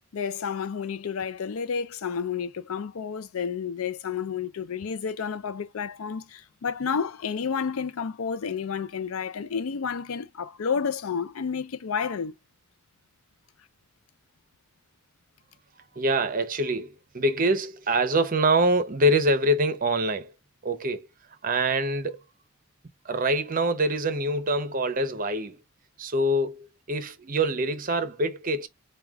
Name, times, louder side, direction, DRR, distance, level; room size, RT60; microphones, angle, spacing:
voice 1, 0.1-12.3, left 6 dB, 75° left, 0.4 m, -30 dB
voice 2, 16.0-20.3 20.6-21.1 21.4-22.2 23.0-25.6 26.0-28.7, right 1 dB, 40° right, 0.7 m, -25 dB
4.7 x 2.3 x 3.4 m
head